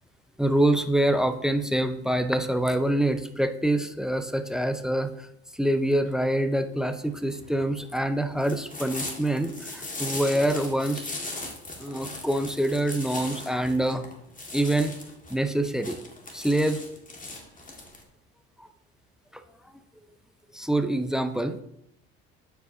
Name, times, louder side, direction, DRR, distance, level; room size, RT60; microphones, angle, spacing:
voice 1, 0.4-5.3 5.5-11.1 11.8-14.0 14.5-14.9 15.3-16.0 16.3-16.8 18.6-18.7 19.3-19.4 20.5-21.6, right 1 dB, ahead, 10 dB, 0.6 m, -25 dB
sound 1, 6.8-18.0, left 2 dB, 25° left, 1.7 m, -38 dB
11.5 x 4.7 x 2.7 m, 0.76 s
hypercardioid pair, 65°, 34 cm